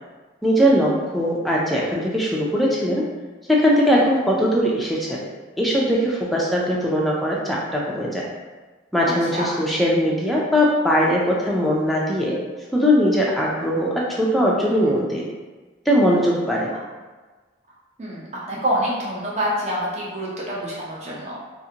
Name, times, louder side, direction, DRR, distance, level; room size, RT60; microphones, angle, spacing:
voice 1, 0.4-3.1 3.5-5.2 5.6-8.3 8.9-12.4 12.7-15.3 15.9-16.7, equal, ahead, -4 dB, 0.3 m, -20 dB
voice 2, 18.0-21.3, equal, 35° right, -6 dB, 0.6 m, -27 dB
2.5 x 2.5 x 2.7 m, 1.3 s
head